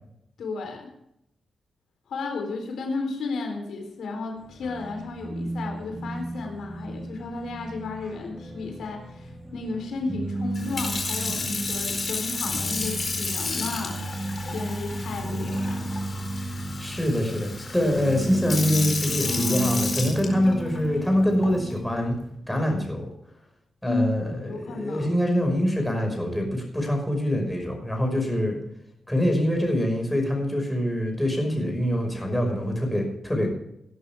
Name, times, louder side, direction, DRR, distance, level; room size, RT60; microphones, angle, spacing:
voice 1, 0.4-0.9 2.1-16.0 23.8-24.1 24.4-25.1, left 3 dB, 85° left, 3 dB, 3.9 m, -33 dB
sound 1, 4.5-22.3, right 1 dB, 15° right, 3.9 m, -33 dB
Sink (filling or washing) / Fill (with liquid), 10.5-20.8 21.4-21.7, left 4 dB, 40° left, 4.4 m, -32 dB
voice 2, 16.8-22.2 22.5-23.1 23.8-28.6 29.1-33.5, equal, 5° left, 2 dB, 5.6 m, -25 dB
18.5 x 11.0 x 3.6 m, 0.77 s
cardioid pair, 90°, 0 cm